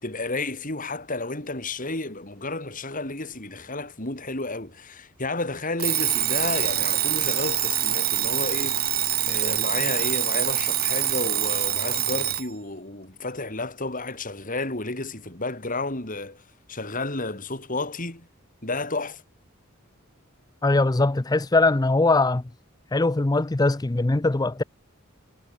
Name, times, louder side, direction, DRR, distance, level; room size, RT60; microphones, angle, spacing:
voice 1, 0.0-16.4 16.7-18.3 18.6-19.2, left 2 dB, 40° left, 4.9 m, -31 dB
Alarm, 5.8-12.5, right 13 dB, 45° right, 2.9 m, -25 dB
voice 2, 20.6-22.4 22.9-24.6, left 2 dB, 20° left, 0.5 m, -21 dB
head